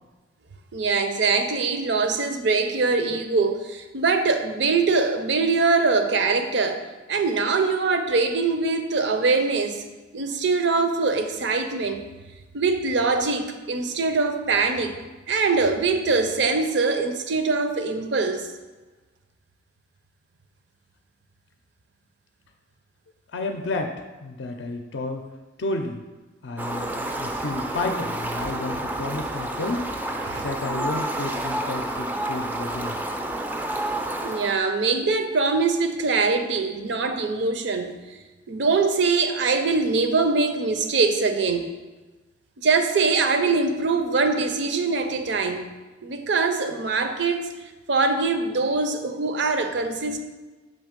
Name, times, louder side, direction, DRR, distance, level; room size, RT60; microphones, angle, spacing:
voice 1, 0.7-6.8 7.1-9.8 10.1-12.0 12.5-15.0 15.3-18.5 30.2-30.5 34.2-37.9 38.5-41.7 42.6-45.6 46.0-47.5 47.9-50.2, right 4 dB, 65° right, 7 dB, 0.5 m, -23 dB
voice 2, 23.3-25.2 25.6-26.0 26.4-29.9 30.4-33.0, left 2 dB, 70° left, 5 dB, 0.5 m, -31 dB
Fowl, 26.6-34.6, right 1 dB, 10° right, 0.3 m, -29 dB
6.3 x 3.2 x 5.1 m, 1.2 s
head